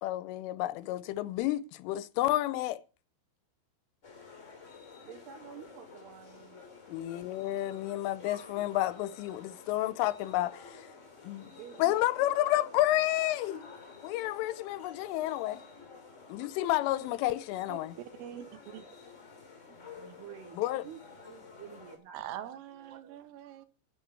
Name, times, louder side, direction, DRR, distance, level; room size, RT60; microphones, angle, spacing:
voice 1, 0.0-2.8 6.9-10.9 11.2-11.5 11.8-13.7 14.0-15.6 16.3-18.0 20.6-20.8, left 15 dB, 80° left, 3.2 m, -30 dB
sound 1, 4.0-22.0, left 4 dB, 20° left, 2.5 m, -51 dB
voice 2, 5.0-6.6 11.4-11.9 19.7-23.2, right 9 dB, 70° right, 2.7 m, -50 dB
voice 3, 17.7-18.9 19.7-19.8 22.1-23.7, right 11 dB, 90° right, 3.8 m, -44 dB
11.0 x 7.3 x 8.3 m
omnidirectional pair, 5.8 m